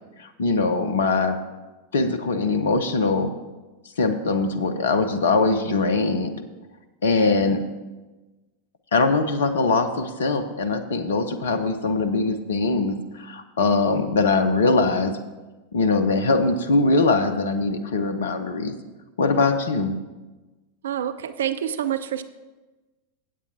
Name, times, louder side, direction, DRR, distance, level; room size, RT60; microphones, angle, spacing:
voice 1, 0.2-1.4 1.9-3.3 4.0-6.3 7.0-7.6 8.9-15.2 15.7-18.7 19.2-20.0, left 3 dB, 65° left, 10 dB, 0.8 m, -22 dB
voice 2, 20.8-22.2, right 10 dB, 60° right, 13 dB, 0.4 m, -27 dB
15.5 x 8.3 x 2.8 m, 1.2 s
figure-of-eight pair, 90°, 0 cm